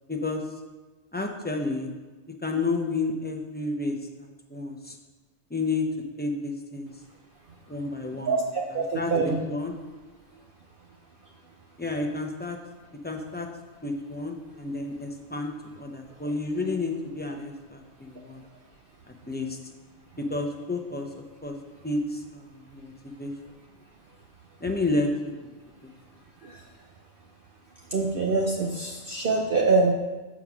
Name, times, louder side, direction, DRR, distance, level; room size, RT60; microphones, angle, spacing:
voice 1, 0.1-0.4 1.1-1.9 2.4-5.0 5.5-5.9 6.2-6.9 7.7-8.4 8.9-9.1 9.5-9.7 11.8-12.6 13.0-13.5 13.8-15.5 15.8-18.4 19.1-19.6 20.3-21.5 21.8-23.6 24.6-25.1 25.4-25.5 25.8-25.9, left 3 dB, 10° left, 2 dB, 0.4 m, -31 dB
voice 2, 8.3-9.4 26.4-26.6 27.9-29.9, right 3 dB, 50° right, -1 dB, 0.7 m, -25 dB
7.1 x 5.0 x 6.0 m, 1.2 s
omnidirectional pair, 1.4 m